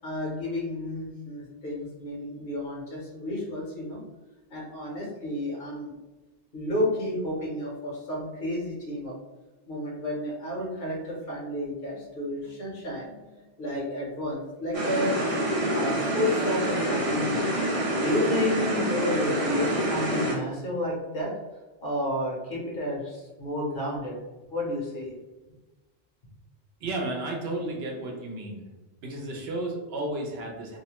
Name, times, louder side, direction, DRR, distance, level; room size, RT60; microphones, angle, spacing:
voice 1, 0.0-4.0 4.5-5.9 6.5-9.1 9.7-13.3 13.6-15.2 15.7-17.5 18.0-21.3 21.8-24.2 24.5-25.2, left 1 dB, 60° left, -3 dB, 0.9 m, -31 dB
sound 1, 14.7-20.3, right 1 dB, 40° right, 0.6 m, -27 dB
voice 2, 26.8-28.6 29.0-30.8, right 2 dB, 80° right, 0 dB, 0.9 m, -33 dB
2.7 x 2.1 x 2.8 m, 1.1 s
omnidirectional pair, 1.0 m